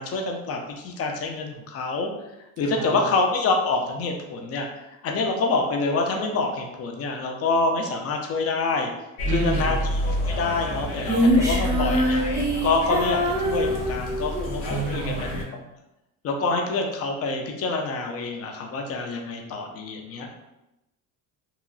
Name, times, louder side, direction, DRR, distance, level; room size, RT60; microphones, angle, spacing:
voice 1, 0.0-2.1 2.6-4.7 5.0-8.9 9.3-9.8 10.2-12.2 12.6-15.2 16.2-20.3, left 3 dB, 40° left, 2 dB, 0.5 m, -26 dB
sound 1, 9.2-15.4, equal, 80° left, 0.7 m, -29 dB
voice 2, 9.2-9.8 14.7-15.5, right 4 dB, 25° right, -1 dB, 0.4 m, -30 dB
Female singing, 11.0-14.6, equal, 10° right, 0.8 m, -23 dB
3.0 x 2.3 x 2.3 m, 0.94 s
cardioid pair, 115°, 36 cm